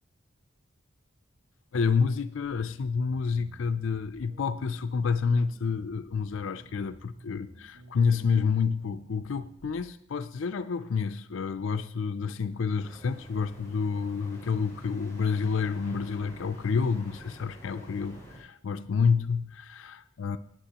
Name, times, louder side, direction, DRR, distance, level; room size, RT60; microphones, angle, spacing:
voice 1, 1.7-20.4, left 5 dB, 65° left, 11 dB, 0.4 m, -29 dB
sound 1, 2.4-9.8, left 1 dB, 85° right, 1.5 m, -54 dB
sound 2, 12.8-18.4, equal, 15° left, 5.1 m, -49 dB
16.5 x 9.2 x 2.9 m, 0.72 s
head